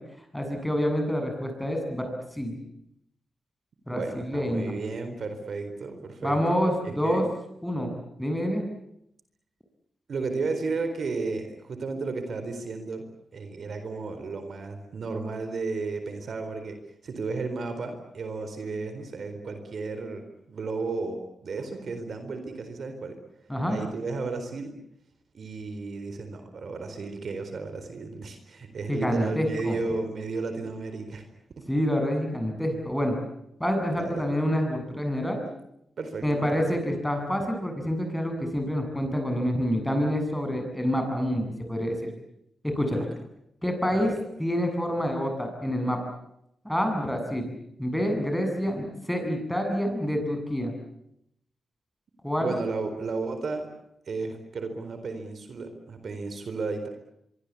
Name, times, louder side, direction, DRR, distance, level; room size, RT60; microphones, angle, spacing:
voice 1, 0.3-2.6 3.9-4.7 6.2-7.2 7.6-8.6 23.5-23.8 28.9-29.7 31.7-33.2 33.6-35.4 36.2-42.0 42.6-43.1 43.6-44.1 44.4-46.0 46.6-47.5 47.8-50.7 52.2-52.5, equal, 5° left, 4 dB, 7.8 m, -27 dB
voice 2, 3.9-6.7 7.0-7.2 10.1-13.1 13.3-16.8 17.0-23.2 23.7-24.7 25.3-31.3 31.6-31.7 34.0-34.3 36.0-36.6 42.9-43.1 43.9-44.1 52.4-53.7 54.1-56.9, right 3 dB, 65° right, 8 dB, 4.1 m, -33 dB
24.5 x 24.0 x 8.5 m, 0.78 s
cardioid pair, 80°, 0 cm